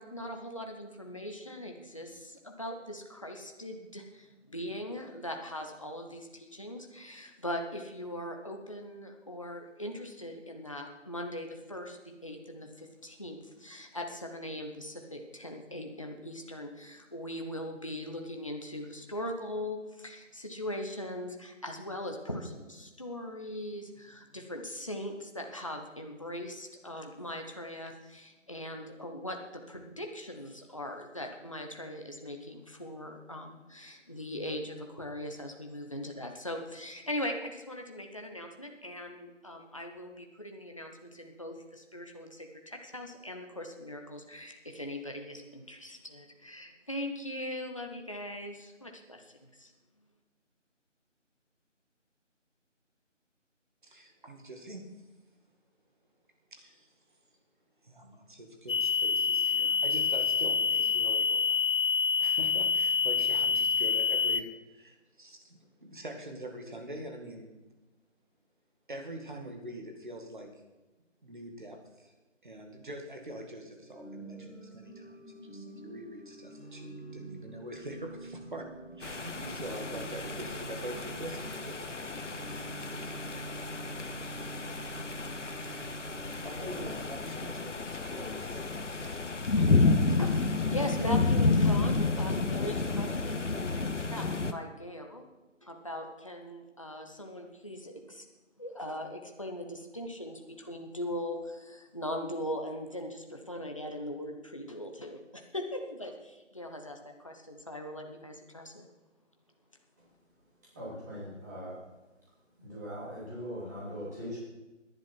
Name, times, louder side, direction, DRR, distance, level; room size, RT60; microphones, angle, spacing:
voice 1, 0.0-49.7 89.6-95.2 95.6-98.2 98.6-108.9, left 1 dB, 25° left, 3 dB, 1.0 m, -40 dB
voice 2, 53.8-54.8 56.5-56.9 57.8-61.6 62.2-67.6 68.9-70.5 71.2-72.1 72.4-78.7 79.0-83.5 85.5-86.0 86.4-90.2, right 1 dB, 40° right, 3 dB, 2.1 m, -44 dB
sound 1, 58.7-64.4, left 5 dB, 90° left, 0.8 m, -27 dB
Organ / Church bell, 73.7-87.9, right 2 dB, 55° left, 2.3 m, -46 dB
sound 2, 79.0-94.5, left 3 dB, 70° left, 1.1 m, -30 dB
voice 3, 110.7-111.8 112.6-114.4, equal, 15° right, -8 dB, 3.3 m, -40 dB
17.0 x 10.5 x 4.6 m, 1.1 s
figure-of-eight pair, 170°, 38 cm